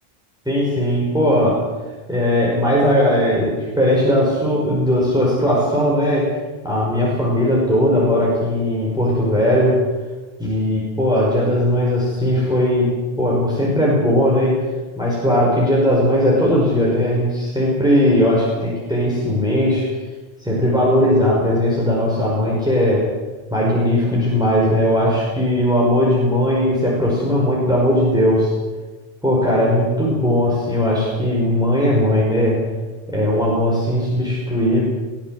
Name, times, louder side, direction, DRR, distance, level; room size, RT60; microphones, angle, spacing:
voice 1, 0.5-1.6 2.1-6.3 6.6-9.8 10.4-14.6 15.0-19.9 20.4-23.1 23.5-28.5 29.2-32.6 33.1-34.8, equal, 5° right, -5 dB, 5.4 m, -18 dB
22.5 x 16.0 x 7.9 m, 1.3 s
omnidirectional pair, 1.0 m